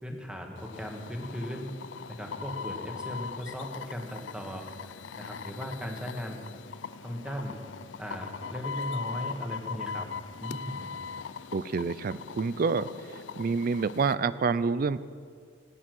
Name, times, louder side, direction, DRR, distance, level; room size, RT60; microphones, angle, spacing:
voice 1, 0.0-1.7 2.1-4.6 5.2-6.4 7.0-7.6 8.0-10.1 10.4-10.9, equal, 5° right, 2 dB, 1.6 m, -37 dB
sound 1, 0.6-14.1, left 5 dB, 70° left, 0.4 m, -40 dB
voice 2, 11.5-12.9 13.4-15.0, right 4 dB, 50° right, 16 dB, 0.4 m, -27 dB
16.5 x 10.0 x 6.1 m, 2.1 s
head